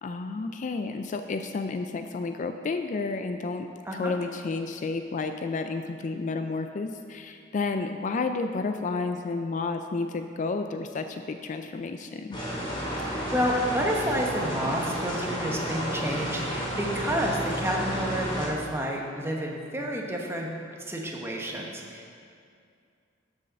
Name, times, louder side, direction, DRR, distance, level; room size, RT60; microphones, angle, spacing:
voice 1, 0.0-3.7 4.0-12.4, left 3 dB, 40° left, 7 dB, 0.3 m, -31 dB
sound 1, 12.3-18.5, equal, 25° left, 2.2 m, -31 dB
voice 2, 13.0-20.5 20.9-22.1, equal, 15° right, -1 dB, 1.0 m, -30 dB
7.3 x 6.4 x 6.6 m, 2.3 s
head